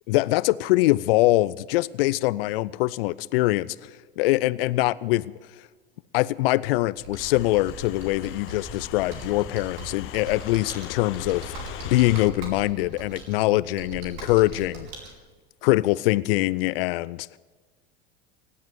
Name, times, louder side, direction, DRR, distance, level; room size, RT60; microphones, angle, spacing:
voice 1, 0.1-5.2 6.1-11.5 11.8-14.9 15.6-17.4, left 18 dB, 65° left, 0.5 m, -23 dB
Computer keyboard, 7.0-15.1, right 4 dB, 65° right, 3.8 m, -41 dB
sound 1, 7.2-12.3, left 13 dB, 40° left, 0.8 m, -39 dB
18.0 x 7.9 x 7.7 m
hypercardioid pair, 90°, 31 cm